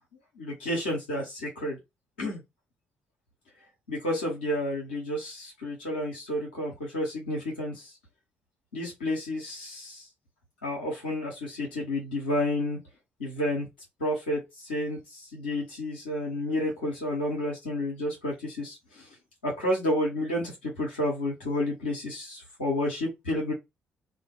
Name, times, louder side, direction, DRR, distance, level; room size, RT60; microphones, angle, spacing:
voice 1, 0.4-1.8 2.2-2.4 3.9-7.9 8.7-10.1 10.6-12.8 13.2-13.7 14.0-19.1 19.4-23.5, left 1 dB, 80° left, 0.8 m, -30 dB
2.2 x 2.2 x 2.9 m
figure-of-eight pair, 40°, 6 cm